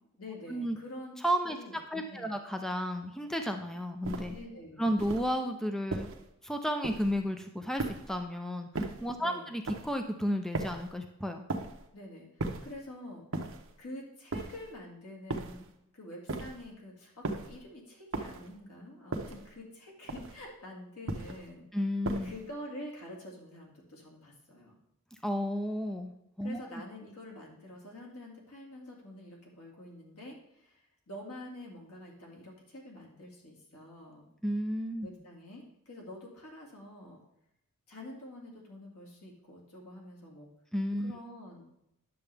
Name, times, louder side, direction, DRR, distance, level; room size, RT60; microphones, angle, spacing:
voice 1, 0.2-1.1 1.5-2.3 4.3-4.9 9.2-9.5 11.9-13.3 13.8-15.7 15.9-21.7 22.2-24.8 26.4-34.3 35.0-37.2 37.9-40.5 41.0-41.6, left 1 dB, 90° left, -1 dB, 2.3 m, -47 dB
voice 2, 1.2-4.4 4.8-6.1 6.4-11.5 21.7-22.3 25.2-26.1 26.4-26.7 34.4-35.1 40.7-41.1, equal, ahead, 5 dB, 0.5 m, -32 dB
sound 1, 4.0-4.4 5.0-5.4 5.9-6.3 6.8-7.2 7.8-8.2 8.7-9.1 9.7-10.0 10.5-10.9 11.5-11.9 12.4-12.8 13.3-13.7 14.3-14.7 15.3-15.7 16.3-16.7 17.2-17.6 18.1-18.5 19.1-19.5 20.1-20.5 21.1-21.5 22.1-22.5, right 2 dB, 60° right, 0.9 m, -37 dB
10.0 x 6.8 x 3.4 m, 0.81 s
head